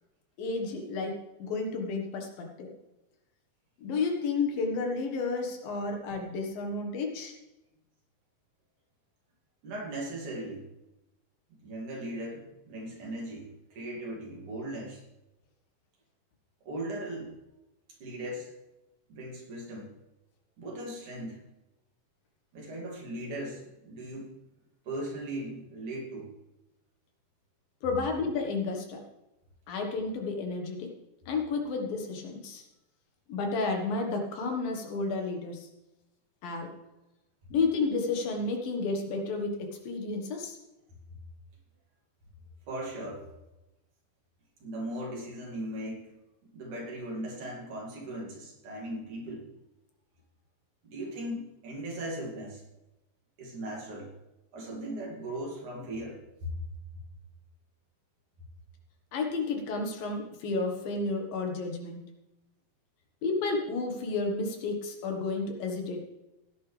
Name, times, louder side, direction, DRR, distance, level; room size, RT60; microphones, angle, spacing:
voice 1, 0.4-2.7 3.8-7.3 27.8-29.0 29.7-30.9 31.3-32.6 33.3-35.7 36.4-36.7 37.5-40.6 59.1-62.0 63.2-66.0, left 3 dB, 75° left, 2 dB, 3.2 m, -31 dB
voice 2, 9.6-10.7 11.6-15.0 16.6-17.4 18.0-18.5 19.1-20.0 20.6-21.4 22.5-24.4 24.9-26.3 42.7-43.3 44.6-46.1 46.5-49.5 50.8-52.6 53.4-54.1 54.5-56.5, right 1 dB, 60° right, -2 dB, 3.8 m, -38 dB
16.5 x 10.0 x 3.4 m, 0.96 s
omnidirectional pair, 4.2 m